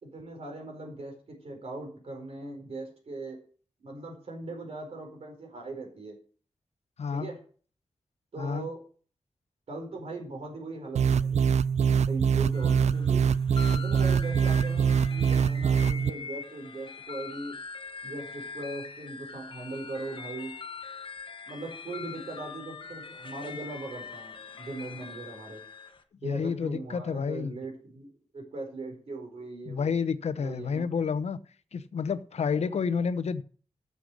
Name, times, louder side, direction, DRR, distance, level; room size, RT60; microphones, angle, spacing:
voice 1, 0.0-3.4 3.8-6.1 7.1-7.4 8.3-8.8 9.7-11.4 11.9-13.3 13.7-17.6 18.0-20.5 21.5-25.6 26.2-28.1 28.3-30.0 30.4-30.9, right 2 dB, 65° right, 1 dB, 4.5 m, -39 dB
voice 2, 7.0-7.3 8.4-8.7 26.2-27.6 29.7-31.4 31.7-33.4, left 6 dB, 75° left, 14 dB, 0.8 m, -30 dB
sound 1, 11.0-16.1, right 7 dB, 80° right, 0.4 m, -24 dB
sound 2, 12.5-26.0, left 5 dB, 45° left, 1.2 m, -43 dB
13.0 x 6.8 x 6.4 m, 0.42 s
wide cardioid pair, 140°, 11 cm